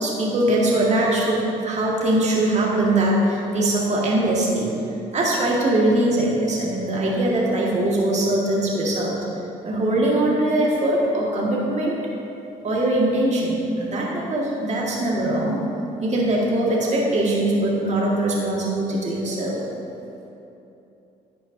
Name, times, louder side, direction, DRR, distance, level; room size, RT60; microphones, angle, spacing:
voice 1, 0.0-4.8 5.1-9.2 9.6-12.0 12.6-15.6 16.0-19.6, right 1 dB, 40° right, -4 dB, 2.0 m, -21 dB
11.0 x 8.4 x 2.8 m, 2.9 s
hypercardioid pair, 60°, 18 cm